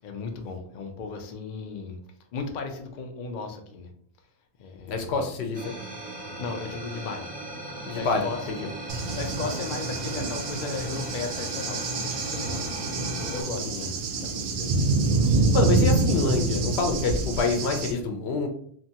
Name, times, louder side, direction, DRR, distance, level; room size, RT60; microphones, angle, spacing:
voice 1, 0.0-2.0 2.3-3.9 4.6-5.3 6.4-7.3 7.9-14.9, left 4 dB, 80° left, 4 dB, 0.4 m, -36 dB
voice 2, 4.9-5.7 7.9-8.3 13.7-13.9 15.5-18.5, left 4 dB, 65° left, 4 dB, 0.8 m, -26 dB
sound 1, 5.5-13.4, right 1 dB, 10° right, 0.4 m, -37 dB
Motorcycle / Engine, 7.7-13.5, left 3 dB, 35° left, 0.9 m, -45 dB
Cricket / Thunder, 8.9-17.9, right 3 dB, 65° right, 0.7 m, -26 dB
2.9 x 2.3 x 2.7 m, 0.62 s
omnidirectional pair, 1.3 m